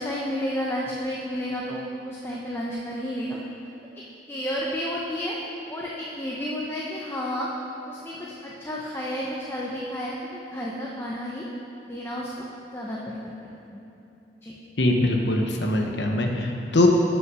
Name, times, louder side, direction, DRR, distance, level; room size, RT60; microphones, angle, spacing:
voice 1, 0.0-3.4 4.0-5.4 5.7-7.5 7.9-11.5 11.8-13.3 13.7-13.8 14.4-14.6, equal, 15° left, -4 dB, 0.8 m, -31 dB
voice 2, 14.8-16.9, left 1 dB, 85° left, 2 dB, 1.0 m, -22 dB
11.0 x 5.7 x 4.9 m, 2.9 s
head